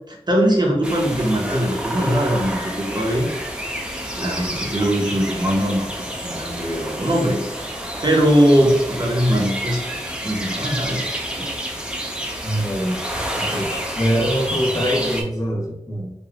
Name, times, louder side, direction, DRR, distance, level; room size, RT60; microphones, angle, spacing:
voice 1, 0.1-3.3 3.7-3.8 4.2-5.9 6.2-7.4 8.0-9.8 10.2-11.0 11.4-11.5, equal, 40° right, -1 dB, 0.8 m, -20 dB
sound 1, 0.8-15.2, right 1 dB, 10° right, 0.6 m, -29 dB
voice 2, 12.4-13.0 13.4-16.1, equal, 30° left, -3 dB, 1.0 m, -23 dB
3.4 x 2.3 x 2.4 m, 0.87 s
wide cardioid pair, 40°, 12 cm